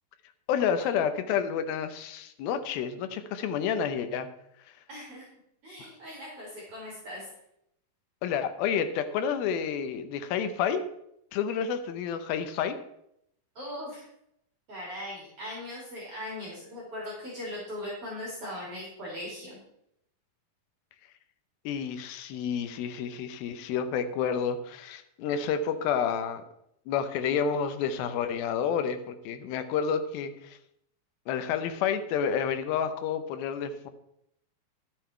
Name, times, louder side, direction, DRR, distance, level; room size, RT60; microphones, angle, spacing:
voice 1, 0.5-4.3 5.8-5.9 8.2-10.8 11.3-12.8 21.7-26.4 26.9-30.6 31.3-33.9, left 7 dB, 85° left, 9 dB, 2.7 m, -29 dB
voice 2, 4.9-5.3 5.6-7.3 13.6-14.0 14.7-19.6, left 1 dB, 40° right, -5 dB, 3.8 m, -39 dB
12.0 x 7.6 x 4.5 m, 0.77 s
omnidirectional pair, 4.2 m